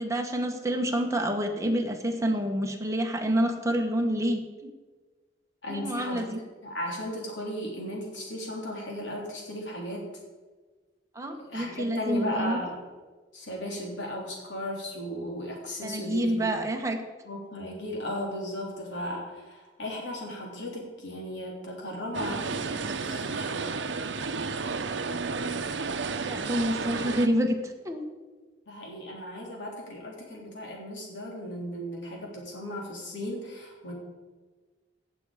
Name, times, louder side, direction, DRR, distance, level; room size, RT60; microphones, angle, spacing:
voice 1, 0.0-4.7 5.7-6.4 11.1-12.6 15.8-17.0 26.2-28.0, equal, 15° right, 3 dB, 1.4 m, -28 dB
voice 2, 5.6-6.3 6.6-10.1 11.4-12.7 13.3-16.5 17.2-23.6 28.7-33.9, left 1 dB, 80° left, -1 dB, 3.4 m, -36 dB
sound 1, 22.1-27.3, right 4 dB, 80° right, 0.8 m, -32 dB
16.5 x 7.1 x 5.0 m, 1.3 s
head